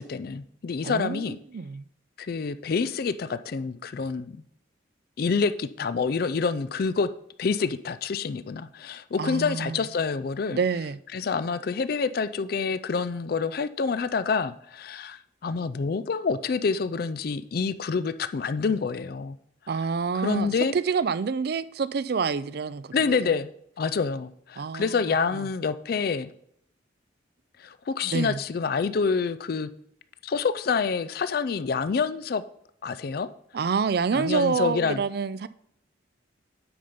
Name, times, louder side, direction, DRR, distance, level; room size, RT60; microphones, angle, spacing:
voice 1, 0.0-1.4 2.2-4.4 5.2-7.1 7.4-10.6 11.1-19.4 20.2-20.7 22.9-23.5 23.8-26.3 27.6-29.7 30.2-32.4 32.8-33.3 34.1-35.0, left 5 dB, 50° left, 0.4 m, -27 dB
voice 2, 0.8-1.9 9.2-9.8 10.5-11.0 19.7-23.4 24.6-25.0 25.3-25.5 28.0-28.4 33.5-35.5, right 5 dB, 55° right, 0.4 m, -28 dB
8.6 x 5.5 x 5.1 m
head